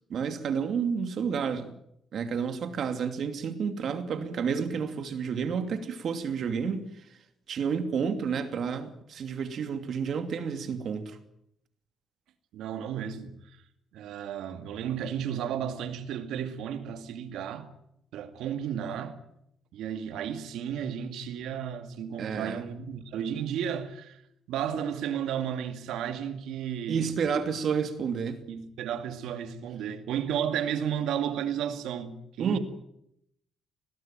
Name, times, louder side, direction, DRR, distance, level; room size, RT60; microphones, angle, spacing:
voice 1, 0.1-1.7 2.1-6.8 7.5-11.2 22.2-22.6 26.9-28.4 32.4-32.6, right 6 dB, 60° right, 2.7 m, -30 dB
voice 2, 12.5-13.4 13.9-17.7 18.1-19.2 19.7-24.2 24.5-27.1 28.5-32.6, right 9 dB, 85° right, 2.3 m, -33 dB
20.5 x 18.0 x 9.2 m
cardioid pair, 90°, 0 cm